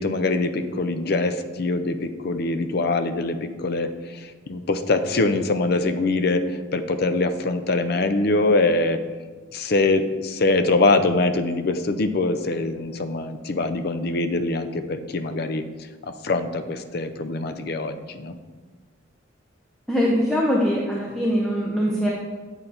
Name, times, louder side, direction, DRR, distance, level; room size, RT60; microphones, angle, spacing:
voice 1, 0.0-9.0 9.5-15.6 16.0-18.4, left 2 dB, 50° left, 9 dB, 0.5 m, -23 dB
voice 2, 19.9-22.1, equal, ahead, -4 dB, 0.7 m, -22 dB
8.8 x 4.0 x 4.3 m, 1.4 s
head